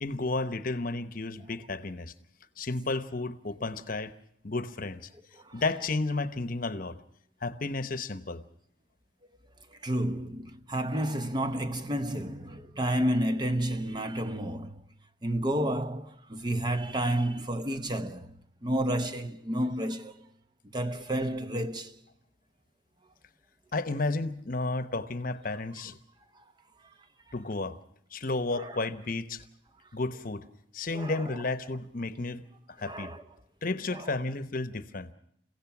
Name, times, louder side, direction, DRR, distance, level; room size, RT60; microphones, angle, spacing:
voice 1, 0.0-2.1 2.6-4.1 4.4-5.1 5.5-7.0 7.4-8.4 23.7-26.0 27.3-27.8 28.1-29.4 29.9-30.4 30.7-32.4 32.8-33.1 33.6-35.1, left 3 dB, 45° left, 1.0 m, -32 dB
voice 2, 9.7-14.8 15.2-18.3 18.6-20.3 20.7-22.0 26.4-26.5 28.5-28.8 30.9-31.4 32.8-33.2 33.9-34.2, right 1 dB, 20° right, 0.8 m, -31 dB
29.5 x 16.5 x 6.0 m
head